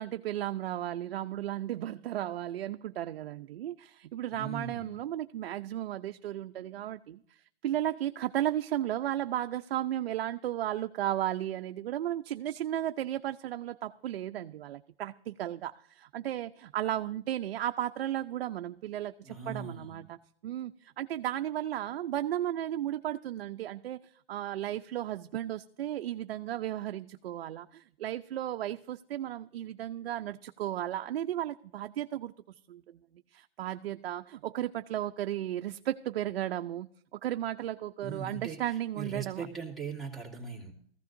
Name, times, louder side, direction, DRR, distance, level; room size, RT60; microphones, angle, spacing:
voice 1, 0.0-7.2 7.6-20.2 20.4-32.3 32.7-32.8 33.3-39.5, right 12 dB, 70° right, 7 dB, 0.6 m, -34 dB
voice 2, 4.3-4.9 19.2-20.0 38.0-40.7, right 5 dB, ahead, -6 dB, 2.4 m, -40 dB
18.5 x 15.0 x 2.6 m, 0.63 s
hypercardioid pair, 155°, 30 cm